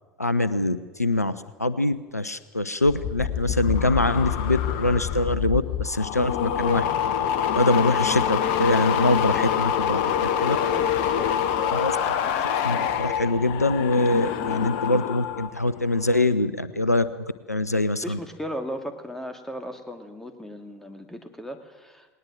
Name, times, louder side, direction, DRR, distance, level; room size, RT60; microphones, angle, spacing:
voice 1, 0.2-1.3 1.6-6.8 7.5-10.6 11.7-12.2 12.6-17.1 17.5-18.2, left 2 dB, 90° left, 15 dB, 0.7 m, -24 dB
sound 1, 2.8-15.5 15.8-16.2, left 9 dB, 55° left, 1.3 m, -26 dB
voice 2, 10.5-11.8 18.0-22.1, equal, 5° left, 6 dB, 2.5 m, -37 dB
19.5 x 19.5 x 7.7 m, 1.3 s
figure-of-eight pair, 70°, 8 cm